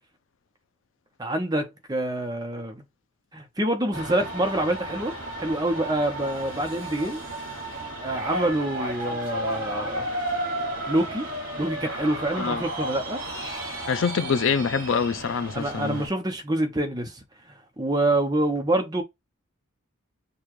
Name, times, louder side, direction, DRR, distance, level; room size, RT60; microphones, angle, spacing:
voice 1, 1.2-2.8 3.3-7.2 8.0-10.1 10.9-11.3 11.6-13.2 15.5-17.1 17.8-19.0, right 1 dB, 20° right, 0.8 m, -26 dB
sound 1, 3.9-16.1, right 1 dB, 65° right, 3.0 m, -33 dB
voice 2, 13.9-16.0, left 6 dB, 65° left, 0.4 m, -25 dB
6.8 x 2.4 x 3.0 m
head